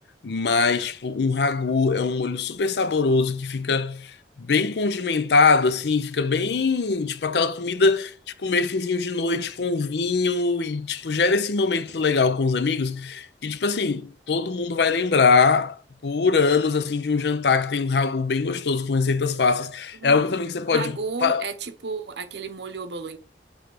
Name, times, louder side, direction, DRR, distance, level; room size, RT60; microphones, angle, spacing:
voice 1, 0.2-8.1 8.4-21.4, left 4 dB, 70° left, 0.5 m, -22 dB
voice 2, 20.7-23.2, right 4 dB, 75° right, 0.9 m, -33 dB
8.0 x 3.3 x 4.7 m
head